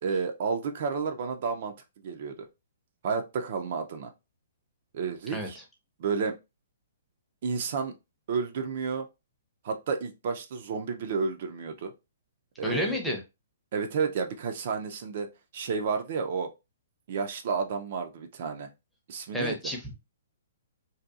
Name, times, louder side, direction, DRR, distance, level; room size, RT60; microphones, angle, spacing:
voice 1, 0.0-1.7 2.0-2.5 3.0-4.1 4.9-5.6 6.0-6.4 7.4-7.9 8.3-9.1 9.6-11.9 12.6-13.0 13.7-16.5 17.1-18.7 19.1-19.6, right 5 dB, 50° right, 0.4 m, -31 dB
voice 2, 12.6-13.2 19.3-20.0, equal, 5° left, 0.6 m, -30 dB
2.7 x 2.2 x 2.4 m
hypercardioid pair, 155°, 0 cm